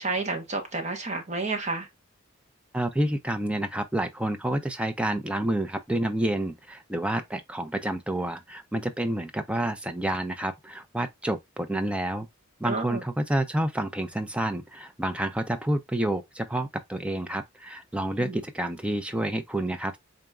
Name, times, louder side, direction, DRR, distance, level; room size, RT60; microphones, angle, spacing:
voice 1, 0.0-1.9 12.6-13.0 18.2-18.4, right 3 dB, 35° right, 0.9 m, -30 dB
voice 2, 2.7-12.3 12.6-20.0, right 1 dB, 5° right, 0.4 m, -29 dB
3.9 x 3.5 x 2.3 m
head